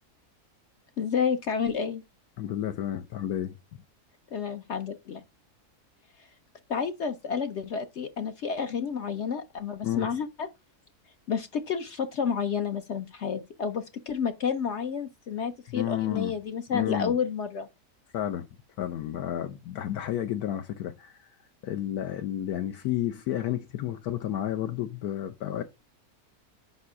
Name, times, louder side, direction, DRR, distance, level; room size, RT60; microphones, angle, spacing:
voice 1, 1.0-2.0 4.3-5.2 6.7-10.5 11.3-17.7, left 6 dB, 60° left, 0.8 m, -30 dB
voice 2, 2.4-3.6 9.8-10.1 15.7-16.3 16.7-17.1 18.1-18.5 18.8-21.2 21.6-25.6, left 11 dB, 80° left, 1.1 m, -31 dB
5.3 x 4.3 x 4.7 m
omnidirectional pair, 1.6 m